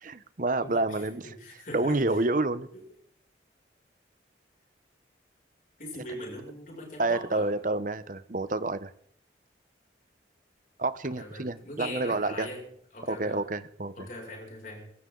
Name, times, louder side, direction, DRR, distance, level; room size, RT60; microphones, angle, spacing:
voice 1, 0.0-1.3 1.7-2.7 7.0-8.9 10.8-12.5 13.1-14.1, right 2 dB, 45° right, 13 dB, 0.9 m, -29 dB
voice 2, 0.6-2.2 2.7-2.8 5.8-7.6 11.0-13.5 14.0-14.9, left 1 dB, 45° left, -1 dB, 6.6 m, -41 dB
24.0 x 14.5 x 3.9 m, 0.67 s
head